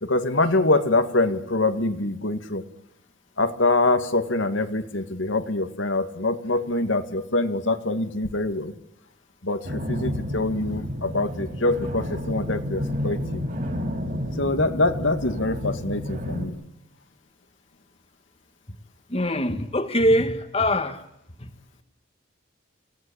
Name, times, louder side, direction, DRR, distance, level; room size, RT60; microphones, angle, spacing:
voice 1, 0.0-2.6 3.4-8.7 9.4-13.4 14.4-16.6, left 2 dB, 80° left, 8 dB, 2.1 m, -24 dB
sound 1, 9.6-16.5, left 1 dB, 45° right, 5.3 m, -30 dB
voice 2, 19.1-21.0, left 1 dB, 30° left, 9 dB, 1.7 m, -22 dB
27.5 x 17.5 x 8.7 m, 0.82 s
head